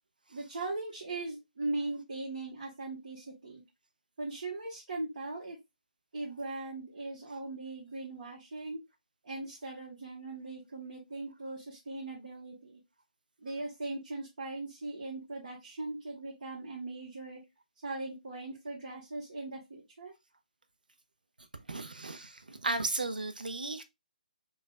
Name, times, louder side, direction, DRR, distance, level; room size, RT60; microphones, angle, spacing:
voice 1, 0.3-3.6 4.2-5.6 6.1-8.8 9.2-12.8 13.4-17.4 17.8-20.1, right 2 dB, 60° right, 1.4 m, -39 dB
voice 2, 21.7-23.8, right 2 dB, 85° right, 0.6 m, -35 dB
5.2 x 2.4 x 2.3 m
figure-of-eight pair, 140°, 5 cm